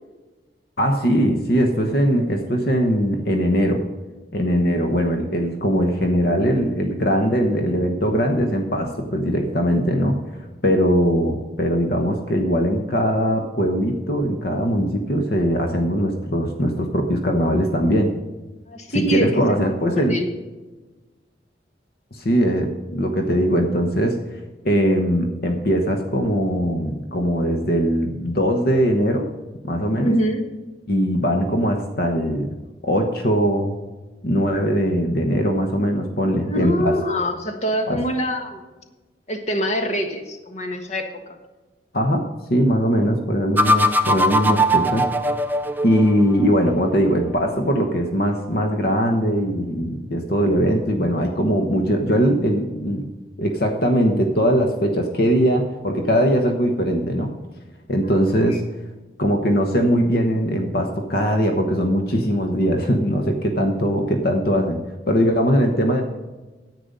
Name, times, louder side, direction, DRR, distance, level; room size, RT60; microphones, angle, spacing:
voice 1, 0.8-3.8 4.3-10.2 10.6-18.1 18.9-20.2 22.1-24.4 24.6-29.3 29.6-30.1 30.9-32.5 32.8-33.8 34.2-36.9 37.9-38.0 41.9-42.2 42.5-45.1 45.8-53.0 53.4-57.3 57.9-58.6 59.2-64.8 65.1-66.0, equal, 55° left, 4 dB, 1.1 m, -20 dB
voice 2, 18.7-19.4 20.0-20.3 30.0-30.4 36.4-38.6 39.3-41.1 58.5-58.6, equal, 40° left, 5 dB, 1.3 m, -24 dB
sound 1, 43.6-46.5, equal, 10° right, 0.5 m, -20 dB
10.0 x 8.7 x 5.4 m, 1.2 s
head